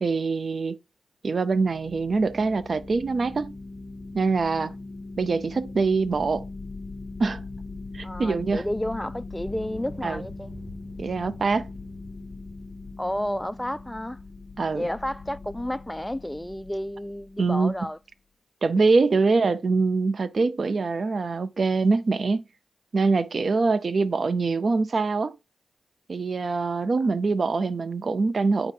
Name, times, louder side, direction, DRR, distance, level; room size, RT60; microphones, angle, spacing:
voice 1, 0.0-0.8 1.2-3.5 4.1-4.7 5.2-6.5 7.2-7.4 7.9-8.6 10.0-10.2 11.0-11.7 14.6-14.9 17.4-17.7 18.6-22.5 22.9-25.3 26.1-28.7, right 4 dB, 55° right, 0.5 m, -24 dB
sound 1, 1.5-17.8, left 3 dB, 30° left, 0.9 m, -40 dB
voice 2, 8.0-10.5 13.0-14.2 14.7-18.0, left 1 dB, 10° left, 0.4 m, -31 dB
sound 2, 9.5-14.7 15.2-16.0, right 1 dB, 35° right, 4.8 m, -49 dB
9.1 x 3.8 x 3.8 m
cardioid pair, 65°, 0 cm